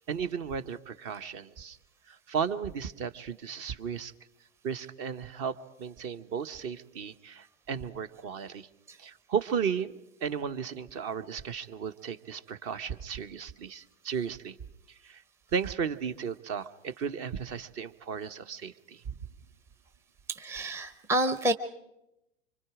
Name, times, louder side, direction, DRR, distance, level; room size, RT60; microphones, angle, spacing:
voice 1, 0.1-1.8 2.1-4.1 4.6-8.7 9.0-14.6 14.9-15.2 15.5-19.1, right 6 dB, 40° right, 11 dB, 1.2 m, -35 dB
voice 2, 20.3-21.5, right 1 dB, 5° right, 9 dB, 0.7 m, -28 dB
26.5 x 25.0 x 4.9 m, 0.87 s
hypercardioid pair, 100°, 37 cm